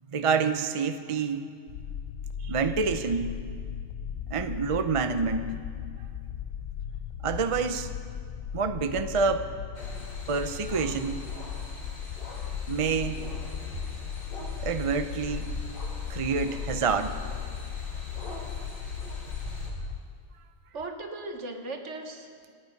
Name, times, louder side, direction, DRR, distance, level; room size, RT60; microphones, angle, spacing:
voice 1, 0.1-1.5 2.4-3.3 4.3-5.5 7.2-7.9 8.5-9.5 10.3-11.2 12.7-13.2 14.6-15.5 16.1-17.2, right 5 dB, 40° right, 9 dB, 0.5 m, -27 dB
sound 1, 1.7-20.0, left 8 dB, 85° left, 1.1 m, -37 dB
sound 2, 9.7-19.7, equal, 40° left, 2.8 m, -42 dB
voice 2, 20.7-22.5, right 2 dB, 65° right, 5 dB, 1.6 m, -38 dB
26.5 x 8.9 x 5.3 m, 2.1 s
omnidirectional pair, 1.4 m